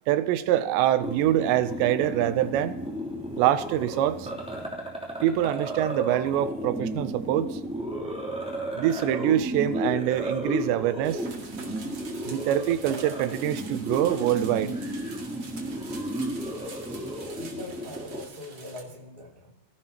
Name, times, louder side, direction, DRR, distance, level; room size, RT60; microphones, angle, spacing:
voice 1, 0.1-2.8 3.4-4.3 5.2-7.6 8.7-11.3 12.3-14.8, right 12 dB, 90° right, 3.0 m, -25 dB
sound 1, 1.0-18.2, equal, ahead, 2.1 m, -33 dB
sound 2, 11.0-18.8, right 4 dB, 40° right, 2.7 m, -45 dB
voice 2, 17.4-19.5, left 2 dB, 20° left, 1.3 m, -42 dB
24.5 x 15.5 x 2.9 m
omnidirectional pair, 4.9 m